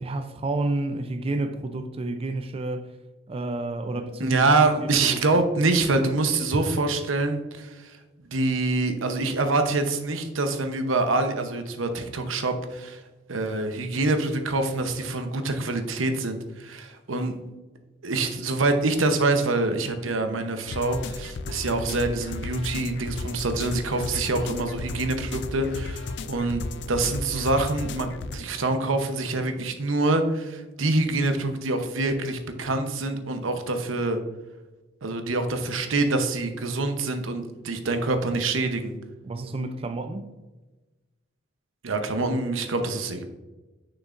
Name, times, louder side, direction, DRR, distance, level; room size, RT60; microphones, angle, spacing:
voice 1, 0.0-2.9 3.3-5.4 6.5-6.6 39.2-40.3, right 2 dB, 30° right, 0.4 m, -30 dB
voice 2, 4.2-8.0 8.2-13.0 13.3-17.3 18.0-34.2 35.0-38.9 41.8-43.2, right 2 dB, 85° right, 0.8 m, -25 dB
sound 1, 20.7-28.4, left 3 dB, 65° left, 0.4 m, -34 dB
6.6 x 6.0 x 2.5 m
head